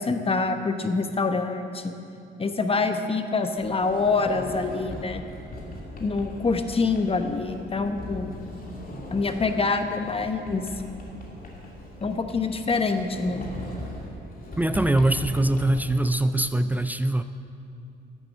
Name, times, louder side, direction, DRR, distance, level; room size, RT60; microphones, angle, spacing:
voice 1, 0.0-1.9 2.4-5.2 6.0-8.4 9.1-10.7 12.0-13.5, left 4 dB, 30° left, 7 dB, 1.0 m, -26 dB
Sliding door, 3.6-15.8, left 1 dB, 45° left, 2.6 m, -39 dB
voice 2, 14.6-17.2, right 1 dB, 10° right, 11 dB, 0.4 m, -23 dB
12.0 x 8.4 x 7.5 m, 2.6 s
cardioid pair, 90°, 20 cm